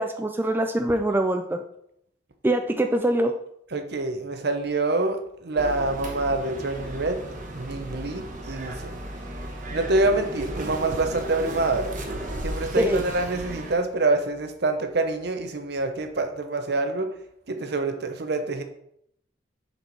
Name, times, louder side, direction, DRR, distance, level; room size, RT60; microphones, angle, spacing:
voice 1, 0.0-1.6 2.4-3.3 12.8-13.0, right 1 dB, 10° right, 5 dB, 0.4 m, -23 dB
voice 2, 3.7-7.2 7.5-9.0 9.7-11.9 12.4-17.1 17.5-18.6, right 2 dB, 60° right, 7 dB, 0.8 m, -26 dB
sound 1, 5.6-13.7, right 1 dB, 45° right, 1.1 m, -34 dB
6.8 x 4.4 x 4.6 m, 0.74 s
head